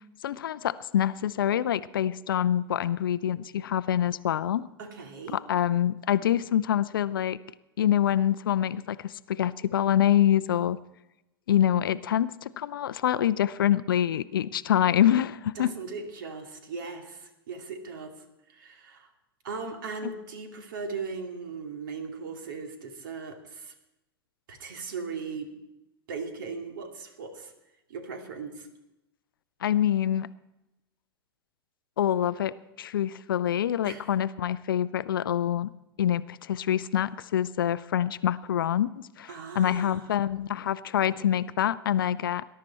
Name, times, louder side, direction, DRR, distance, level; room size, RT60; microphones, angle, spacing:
voice 1, 0.2-4.7 5.3-7.4 7.8-10.8 11.5-15.7 20.0-20.1 29.6-30.3 32.0-32.5 32.8-35.7 36.0-42.4, left 10 dB, 60° left, 17 dB, 0.5 m, -26 dB
voice 2, 4.8-5.4 15.6-18.1 18.5-19.1 19.4-23.7 24.5-25.5 26.1-27.5 27.9-28.7 33.8-34.0 39.3-40.1, right 4 dB, 60° right, 5 dB, 2.4 m, -38 dB
20.0 x 11.5 x 4.3 m, 0.94 s
figure-of-eight pair, 90°, 13 cm